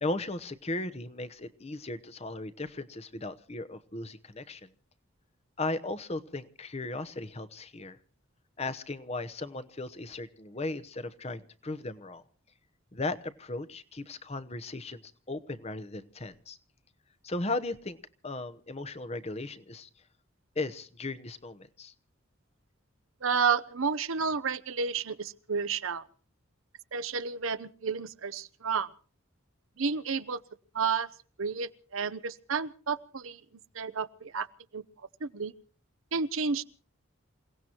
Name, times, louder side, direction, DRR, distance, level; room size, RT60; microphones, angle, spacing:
voice 1, 0.0-4.7 5.6-8.0 8.6-12.2 12.9-15.0 15.3-16.6 17.2-18.0 18.2-19.9 20.6-21.9, left 2 dB, 30° left, 12 dB, 0.9 m, -36 dB
voice 2, 23.2-26.0 26.9-28.9 29.8-30.4 30.7-31.1 31.4-33.4 33.7-34.5 34.7-34.8 35.2-35.5 36.1-36.6, right 5 dB, 75° right, 13 dB, 0.8 m, -31 dB
28.0 x 17.5 x 2.9 m, 0.41 s
head